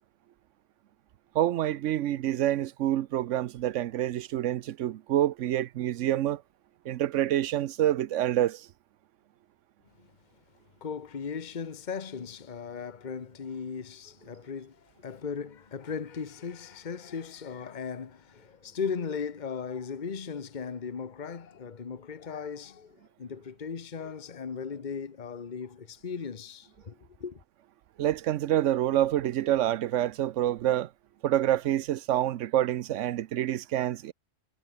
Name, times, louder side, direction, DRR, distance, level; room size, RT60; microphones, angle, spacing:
voice 1, 1.3-6.4 6.8-8.7 28.0-30.9 31.2-34.1, right 12 dB, 80° right, 1.0 m, -27 dB
voice 2, 10.8-27.4, left 6 dB, 40° left, 1.2 m, -37 dB
omnidirectional pair, 1.3 m